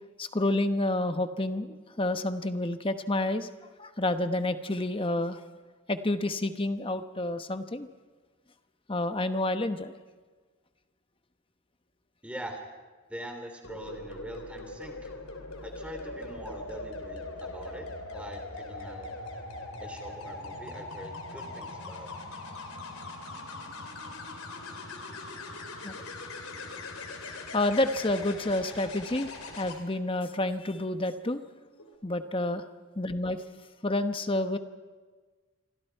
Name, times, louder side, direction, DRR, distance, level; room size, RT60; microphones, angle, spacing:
voice 1, 0.2-3.5 3.8-5.4 5.9-7.9 8.9-9.9 25.8-26.0 27.5-29.3 29.6-31.4 32.0-32.6 33.0-33.4 33.8-34.6, left 1 dB, 25° left, 9 dB, 1.0 m, -29 dB
voice 2, 12.2-12.6 13.1-15.1 15.6-19.1 19.8-22.1, right 1 dB, 5° right, 4 dB, 3.0 m, -43 dB
sound 1, 13.6-29.8 31.7-31.9, left 2 dB, 80° left, 3.5 m, -41 dB
27.5 x 24.0 x 4.6 m, 1.4 s
head